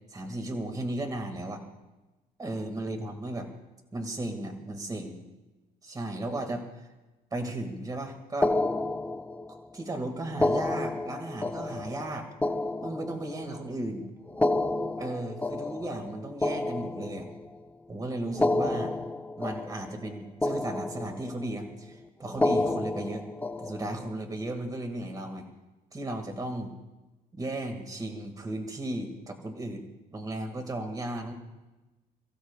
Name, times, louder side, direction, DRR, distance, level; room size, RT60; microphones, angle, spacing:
voice 1, 0.1-1.6 2.4-3.5 3.9-5.2 5.8-6.6 7.3-8.6 9.7-12.3 12.8-14.1 15.0-17.3 17.9-18.9 19.4-23.2 23.6-25.5 25.9-26.7 27.3-29.9 30.1-31.3, right 1 dB, 20° right, 5 dB, 2.1 m, -35 dB
sound 1, 8.4-9.7 10.3-13.6 14.3-17.6 18.3-20.1 20.4-21.5 22.3-24.1, left 2 dB, 10° left, 0.8 m, -30 dB
28.5 x 15.5 x 2.4 m, 1.1 s
cardioid pair, 110°, 17 cm